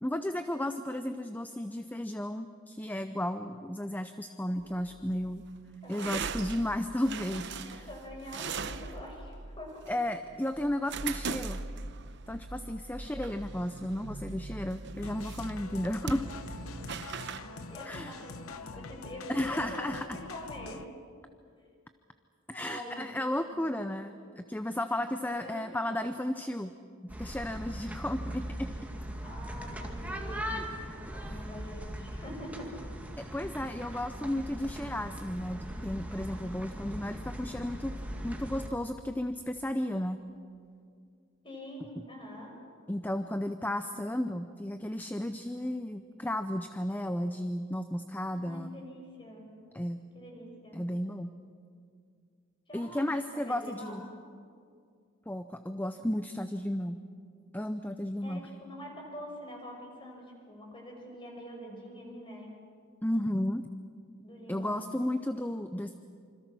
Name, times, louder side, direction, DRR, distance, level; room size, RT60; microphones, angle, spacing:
voice 1, 0.0-5.4 5.9-7.9 9.9-11.6 12.3-16.3 17.8-18.2 19.3-20.2 22.5-26.7 27.0-28.7 33.2-38.0 38.2-40.2 42.9-48.8 49.7-50.0 50.7-51.3 52.7-54.0 55.3-57.0 57.5-58.5 63.0-63.6 64.5-65.9, left 1 dB, 10° left, 9 dB, 0.6 m, -33 dB
sound 1, 4.6-17.4, right 4 dB, 55° right, 0.9 m, -40 dB
voice 2, 5.8-6.2 7.6-10.0 12.9-13.1 16.2-16.4 16.7-16.9 17.4-20.9 22.5-23.1 23.5-23.6 24.0-24.2 25.3-25.8 29.2-30.7 31.1-32.7 41.4-42.6 48.3-49.5 50.1-50.8 52.7-54.1 58.2-62.5 64.2-64.9, equal, 25° left, 1 dB, 5.8 m, -45 dB
sound 2, 15.0-20.9, left 4 dB, 85° left, 0.9 m, -45 dB
sound 3, 27.1-38.7, equal, 5° right, 1.9 m, -40 dB
27.0 x 25.5 x 6.2 m, 2.3 s
head